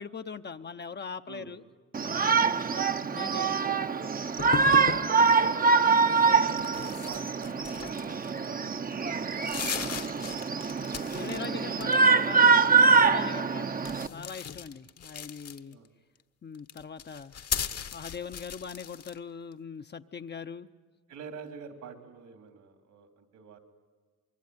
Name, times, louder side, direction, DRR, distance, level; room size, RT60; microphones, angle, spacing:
voice 1, 0.0-1.6 3.1-3.6 11.1-12.5 12.9-13.8 14.1-15.8 16.4-17.3 17.9-20.7, left 6 dB, 35° left, 8 dB, 0.8 m, -41 dB
voice 2, 1.3-1.6 3.2-4.1 4.4-5.7 6.3-8.2 8.5-9.6 9.9-10.1 12.1-12.3 13.4-13.6 15.7-16.0 21.1-23.6, right 6 dB, 75° right, 6 dB, 3.6 m, -46 dB
Shout, 1.9-14.1, right 5 dB, 30° right, 0.8 m, -24 dB
sound 1, 4.4-5.1 6.5-8.4 8.9-9.0 9.3-11.4 11.7-12.2 13.8-15.9 16.5-19.2, left 7 dB, 50° left, 1.3 m, -37 dB
25.0 x 22.5 x 9.7 m, 1.4 s
cardioid pair, 90°, 30 cm